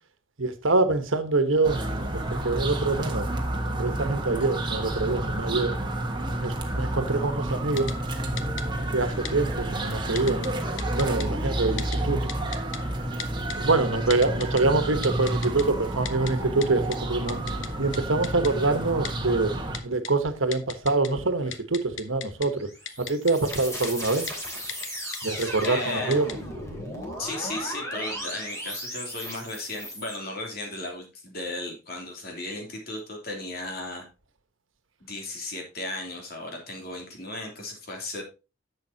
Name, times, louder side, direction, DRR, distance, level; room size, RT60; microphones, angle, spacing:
voice 1, 0.4-1.8 2.3-3.3 3.8-5.7 6.4-7.9 8.8-10.5 10.9-12.3 13.6-17.4 17.8-19.6 19.8-22.7 23.1-24.3 25.2-26.3, right 3 dB, 80° right, 1.4 m, -25 dB
sound 1, 1.6-19.8, right 1 dB, 25° right, 1.4 m, -30 dB
Typing, 7.8-7.9 8.4-8.6 9.3-9.4 10.2-10.5 10.8-11.3 11.8-12.0 12.3-12.8 13.2-13.6 14.1-14.6 15.0-15.6 16.1-16.3 16.6-16.7 16.9-17.0 17.3-17.7 17.9-18.0 18.2-18.5 19.0-19.1 19.7-20.1 20.5-21.1 21.4-22.5 22.9-23.6 23.8-23.9 24.3-24.4 24.7-24.9 25.1-25.7 26.1-26.3, left 9 dB, 70° left, 1.0 m, -35 dB
sound 2, 22.5-30.2, equal, 15° left, 3.1 m, -36 dB
voice 2, 25.6-26.2 27.2-34.1 35.1-38.2, left 2 dB, 50° left, 3.1 m, -35 dB
11.0 x 7.5 x 2.8 m
head